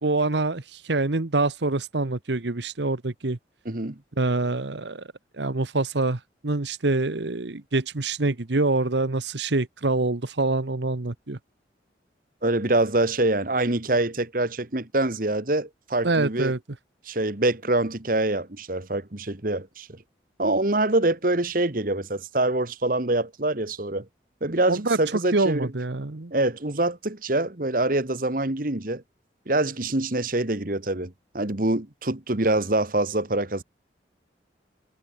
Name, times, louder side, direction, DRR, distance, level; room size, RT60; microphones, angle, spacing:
voice 1, 0.0-3.4 4.2-5.0 5.3-11.4 16.0-16.6 24.7-25.0 25.3-26.3, right 2 dB, 75° right, 1.2 m, -25 dB
voice 2, 3.6-4.0 12.4-16.5 17.0-20.0 20.4-24.1 24.4-25.7 26.3-29.0 29.5-33.6, right 2 dB, 50° right, 1.6 m, -25 dB
head